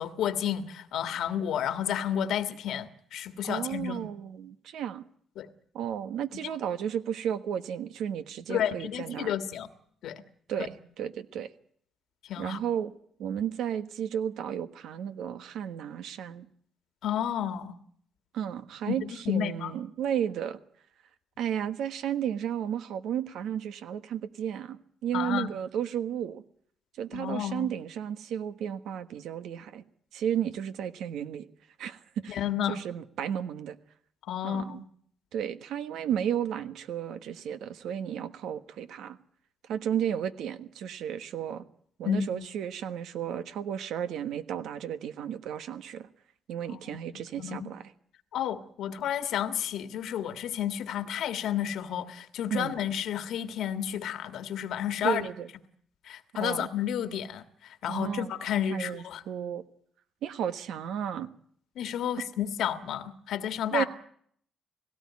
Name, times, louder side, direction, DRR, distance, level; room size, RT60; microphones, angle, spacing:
voice 1, 0.0-4.1 5.4-5.5 6.4-6.5 8.5-9.7 10.0-10.2 12.3-12.6 17.0-17.7 18.9-19.0 19.2-19.7 25.1-25.5 27.1-27.7 32.3-32.8 34.2-34.8 42.0-42.4 46.7-47.0 47.4-47.7 48.3-55.3 56.0-59.2 61.7-63.8, left 9 dB, 75° left, 11 dB, 1.7 m, -31 dB
voice 2, 3.5-5.0 5.7-9.3 10.5-10.7 11.0-11.5 12.4-12.9 13.2-16.5 18.3-20.6 21.4-26.4 27.0-29.8 30.1-31.5 31.8-32.4 32.7-33.8 34.4-34.8 35.3-39.2 39.7-41.6 42.0-46.1 46.5-47.8 52.5-52.7 55.0-55.5 56.4-56.7 57.9-58.3 58.7-59.6 60.2-61.3 63.7-63.8, right 9 dB, 80° right, 12 dB, 1.3 m, -33 dB
18.0 x 17.0 x 9.6 m, 0.64 s
cardioid pair, 90°, 0 cm